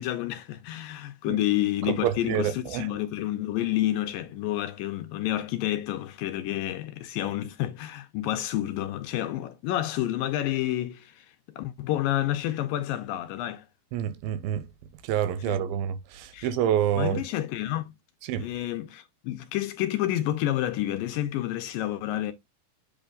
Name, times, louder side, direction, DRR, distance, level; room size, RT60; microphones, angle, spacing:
voice 1, 0.0-13.7 15.4-15.6 16.3-16.5 17.0-17.9 18.4-22.3, left 13 dB, 80° left, 2.1 m, -29 dB
voice 2, 1.9-2.9 13.9-14.6 15.0-17.2 18.2-18.5, right 10 dB, 80° right, 2.4 m, -27 dB
8.1 x 3.2 x 3.8 m
omnidirectional pair, 4.4 m